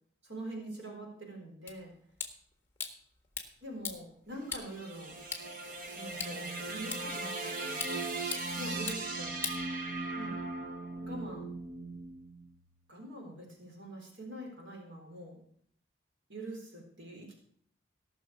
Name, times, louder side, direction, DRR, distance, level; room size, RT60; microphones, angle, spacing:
voice 1, 0.2-1.9 3.6-5.1 5.9-8.1 8.6-9.4 10.1-10.4 11.0-11.5 12.9-15.4 16.3-17.3, right 1 dB, 75° right, 0 dB, 4.1 m, -44 dB
sound 1, 1.7-10.3, left 6 dB, 10° left, 1.6 m, -44 dB
sound 2, 4.4-12.7, right 3 dB, 45° right, 1.6 m, -38 dB
18.0 x 6.2 x 7.1 m, 0.62 s
head